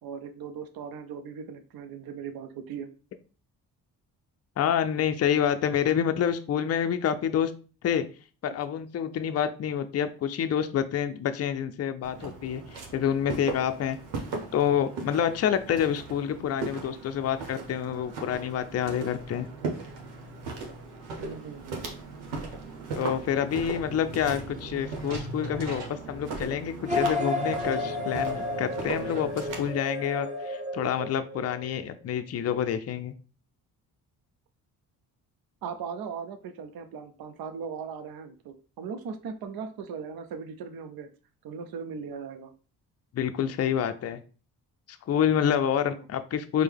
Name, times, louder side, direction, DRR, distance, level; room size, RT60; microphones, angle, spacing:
voice 1, 0.0-2.9 21.2-21.9 35.6-41.1 41.4-42.5 45.8-46.0, right 6 dB, 55° right, 8 dB, 0.7 m, -38 dB
voice 2, 4.6-7.5 7.8-8.1 8.4-14.0 14.5-19.5 22.9-33.1 43.1-44.2 45.1-46.6, left 9 dB, 35° left, 9 dB, 0.5 m, -28 dB
Walk footsteps, 12.0-29.7, right 3 dB, 75° right, 1.0 m, -38 dB
sound 1, 26.8-31.7, left 2 dB, 15° right, 1.1 m, -32 dB
4.4 x 2.2 x 3.4 m, 0.37 s
hypercardioid pair, 45°, 44 cm